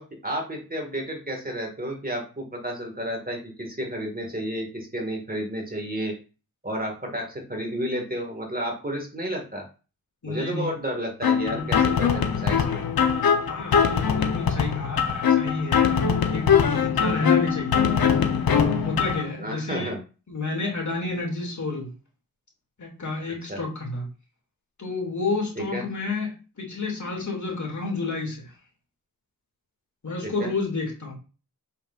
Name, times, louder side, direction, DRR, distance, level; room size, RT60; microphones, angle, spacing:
voice 1, 0.0-6.1 6.6-9.6 10.2-12.8 19.4-20.0 23.5-23.6 25.6-25.8 30.2-30.5, right 1 dB, 25° right, 1 dB, 2.0 m, -31 dB
voice 2, 10.2-10.7 11.5-11.7 13.5-17.9 18.4-19.9 20.3-21.9 22.8-24.1 24.8-28.5 30.0-31.1, left 3 dB, 55° left, -1 dB, 2.6 m, -30 dB
sound 1, 11.2-19.2, left 7 dB, 75° left, 1.0 m, -22 dB
6.9 x 5.6 x 2.6 m, 0.33 s
wide cardioid pair, 70°, 36 cm